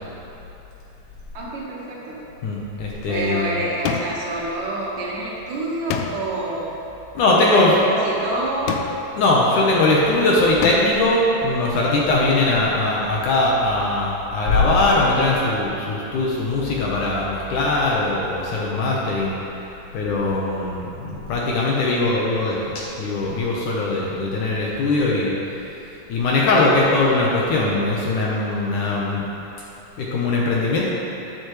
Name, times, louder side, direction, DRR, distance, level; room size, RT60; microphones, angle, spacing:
voice 1, 1.3-2.2 3.1-6.7 7.5-8.9, right 2 dB, 65° right, -5 dB, 2.9 m, -27 dB
voice 2, 2.4-3.5 7.1-7.8 9.2-19.4 19.9-25.3 26.1-29.2 30.0-30.8, left 2 dB, 70° left, -4 dB, 2.3 m, -20 dB
sound 1, 3.8-4.4 5.9-6.4 8.7-9.2 10.6-11.1, left 7 dB, 85° left, 2.5 m, -28 dB
13.5 x 9.6 x 3.2 m, 3.0 s
omnidirectional pair, 4.3 m